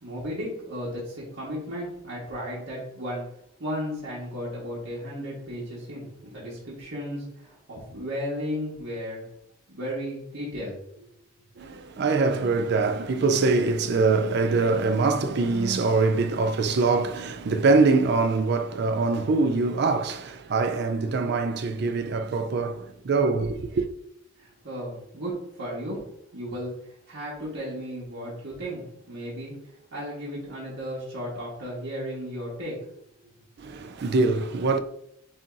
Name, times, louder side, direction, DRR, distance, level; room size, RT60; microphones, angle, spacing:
voice 1, 0.0-3.2 3.6-9.2 9.7-11.1 24.4-26.0 26.3-29.5 29.9-33.0, equal, 80° right, 1.4 m, -34 dB
voice 2, 11.6-23.9 33.6-34.8, right 3 dB, 55° right, 0.4 m, -23 dB
7.4 x 2.9 x 2.5 m
head